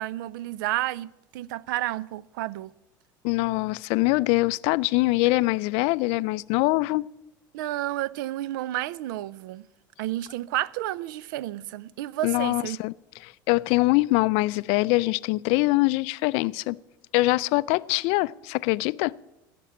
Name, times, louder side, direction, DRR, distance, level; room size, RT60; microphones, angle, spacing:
voice 1, 0.0-2.7 7.5-9.6 10.0-12.8, right 15 dB, 80° right, 0.4 m, -31 dB
voice 2, 3.2-7.1 12.2-12.9 13.2-16.8 17.1-19.1, left 22 dB, 65° left, 0.3 m, -23 dB
15.0 x 6.1 x 8.6 m
supercardioid pair, 95°, 11 cm